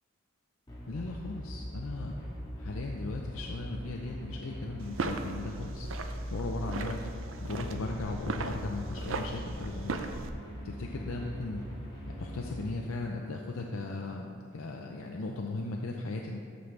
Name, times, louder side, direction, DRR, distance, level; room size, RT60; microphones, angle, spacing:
sound 1, 0.7-12.7, equal, 20° left, 1.5 m, -41 dB
voice 1, 0.9-2.1 2.6-5.9 6.3-7.0 7.4-10.0 10.6-11.6 12.2-16.4, left 2 dB, 85° left, 0 dB, 0.6 m, -37 dB
sound 2, 4.8-10.3, right 3 dB, 75° right, 0.5 m, -38 dB
13.0 x 5.3 x 3.3 m, 2.4 s
head